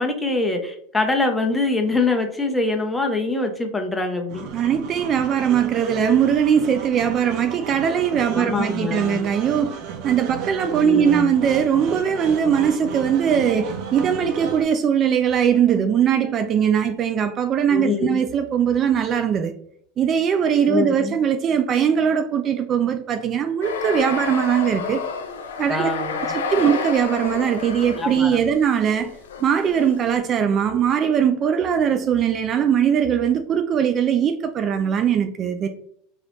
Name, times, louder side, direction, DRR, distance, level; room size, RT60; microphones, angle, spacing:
voice 1, 0.0-4.5 8.3-9.2 10.8-11.3 17.7-18.2 20.7-21.1 25.7-26.3 28.0-28.3, left 3 dB, 10° left, 0.8 m, -24 dB
sound 1, 4.3-14.6, right 6 dB, 55° right, 0.7 m, -34 dB
voice 2, 4.5-19.5 20.0-25.0 25.6-25.9 26.2-35.7, right 8 dB, 35° right, 0.3 m, -20 dB
sound 2, 23.6-30.2, left 5 dB, 90° left, 0.5 m, -30 dB
3.9 x 3.0 x 3.1 m
hypercardioid pair, 110°, 0 cm